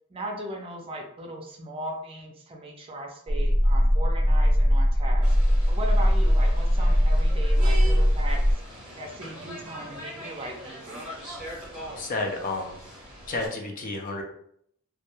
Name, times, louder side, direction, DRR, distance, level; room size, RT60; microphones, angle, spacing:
voice 1, 0.1-5.3 5.7-8.6 9.0-11.1, right 1 dB, 25° right, 1 dB, 0.4 m, -38 dB
sound 1, 3.3-8.5, equal, 15° left, 0.9 m, -20 dB
sound 2, 5.2-13.5, right 1 dB, 5° right, 1.2 m, -41 dB
voice 2, 12.0-12.7 13.3-14.2, left 2 dB, 40° left, 2 dB, 0.4 m, -30 dB
2.1 x 2.1 x 2.9 m, 0.69 s
head